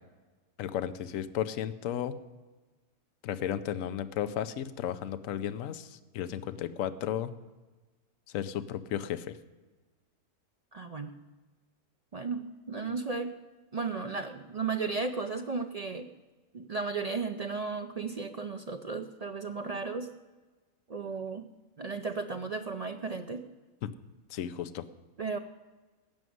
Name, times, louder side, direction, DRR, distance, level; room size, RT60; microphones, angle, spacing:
voice 1, 0.6-2.2 3.2-7.3 8.3-9.4 23.8-23.9 24.3-24.9, left 10 dB, 70° left, 11 dB, 1.0 m, -34 dB
voice 2, 10.7-11.2 12.1-13.3 13.7-16.1 16.5-20.1 20.9-21.5 21.8-23.4 25.2-25.4, right 4 dB, 70° right, 6 dB, 0.3 m, -34 dB
16.0 x 6.2 x 9.3 m, 1.2 s
omnidirectional pair, 1.5 m